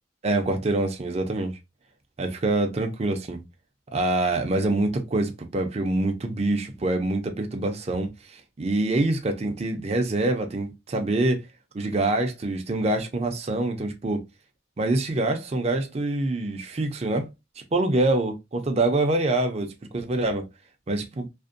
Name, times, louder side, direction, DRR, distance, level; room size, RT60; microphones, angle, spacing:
voice 1, 0.2-1.6 2.2-3.4 3.9-11.4 11.7-14.2 14.8-17.3 17.7-20.5 20.9-21.3, right 2 dB, 35° right, 0.5 m, -25 dB
2.5 x 2.1 x 2.5 m
head